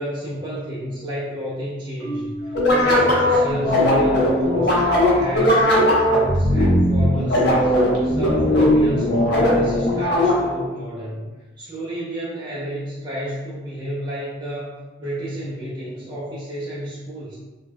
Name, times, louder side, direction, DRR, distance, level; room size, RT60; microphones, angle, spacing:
voice 1, 0.0-5.7 6.0-7.7 8.0-11.2 11.6-17.4, equal, 25° right, -9 dB, 0.5 m, -31 dB
Marimba xylophone, 2.0-4.0, right 1 dB, ahead, 0.8 m, -35 dB
sound 1, 2.5-10.6, left 1 dB, 65° left, 0.7 m, -18 dB
2.2 x 2.1 x 3.3 m, 1.2 s
head